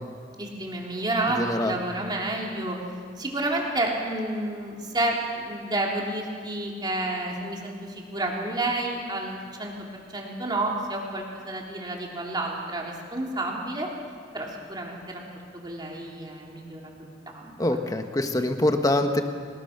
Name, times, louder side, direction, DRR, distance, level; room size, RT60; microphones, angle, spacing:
voice 1, 0.4-2.8 3.2-9.9 10.1-13.9 14.3-15.2 15.5-16.8 17.3-17.5, right 2 dB, 25° right, -1 dB, 3.3 m, -30 dB
voice 2, 1.3-1.8 17.6-19.2, left 1 dB, 20° left, 5 dB, 1.4 m, -24 dB
26.0 x 19.5 x 6.0 m, 2.1 s
head